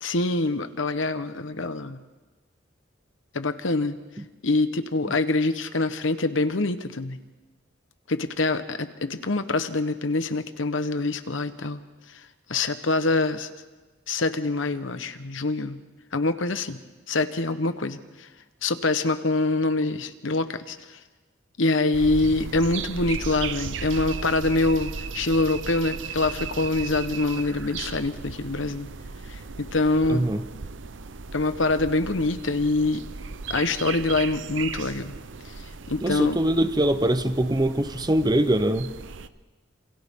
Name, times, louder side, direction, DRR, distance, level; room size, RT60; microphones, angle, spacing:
voice 1, 0.0-2.0 3.3-3.9 4.4-7.2 8.1-11.8 12.5-13.5 14.1-15.8 16.1-16.8 17.1-18.0 18.6-20.8 21.6-28.9 29.3-30.3 31.3-33.0 33.5-35.1 35.9-36.4, left 2 dB, 75° left, 10 dB, 1.1 m, -25 dB
sound 1, 21.9-39.3, right 5 dB, 70° right, 0.7 m, -36 dB
voice 2, 30.1-30.4 36.0-38.9, right 1 dB, 20° right, 11 dB, 0.8 m, -23 dB
28.0 x 27.0 x 3.7 m, 1.3 s
head